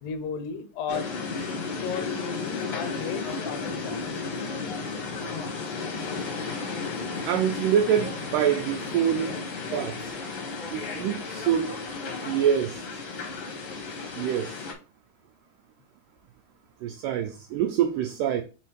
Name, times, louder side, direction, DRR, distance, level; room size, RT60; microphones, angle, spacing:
voice 1, 0.0-1.2 1.8-4.2, left 6 dB, 75° left, 1.9 m, -34 dB
sound 1, 0.9-14.7, left 4 dB, 50° left, 1.8 m, -34 dB
voice 2, 7.3-9.4 9.7-10.1 10.7-11.8 12.2-12.8 14.2-14.5 16.8-18.4, right 9 dB, 85° right, 1.9 m, -25 dB
5.0 x 4.2 x 4.6 m
omnidirectional pair, 4.5 m